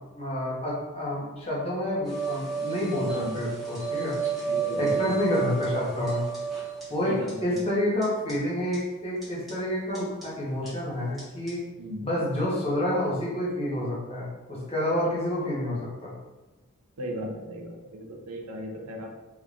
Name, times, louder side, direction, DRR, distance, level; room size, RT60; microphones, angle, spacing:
voice 1, 0.1-4.1 4.8-6.2 6.9-7.2 7.4-11.6 12.0-16.1, left 1 dB, 25° left, -5 dB, 1.0 m, -29 dB
sound 1, 2.1-6.8 7.3-7.4 7.6-7.7 8.0-8.1 8.3-8.4 8.7-8.8 9.2-9.5 10.0-10.2 10.7-10.8 11.2-11.3 11.5-11.6, right 6 dB, ahead, 1.5 m, -31 dB
voice 2, 3.1-3.4 4.4-5.2 7.0-7.6 11.8-12.1 17.0-19.1, equal, 80° right, 0 dB, 0.7 m, -36 dB
3.6 x 3.2 x 2.4 m, 1.1 s
head